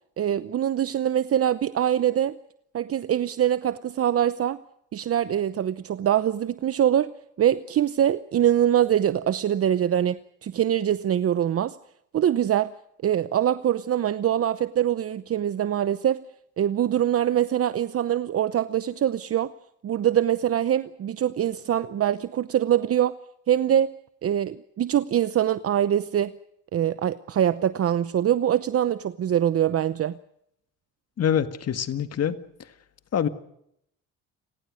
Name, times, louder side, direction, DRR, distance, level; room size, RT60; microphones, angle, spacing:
voice 1, 0.2-2.4 2.7-4.6 4.9-11.8 12.1-12.7 13.0-16.3 16.6-19.5 19.8-23.2 23.5-23.9 24.2-26.3 26.7-30.2, right 10 dB, 50° right, 0.8 m, -23 dB
voice 2, 31.2-32.4 33.1-33.3, left 9 dB, 55° left, 1.9 m, -25 dB
30.0 x 18.0 x 6.5 m
cardioid pair, 90°, 30 cm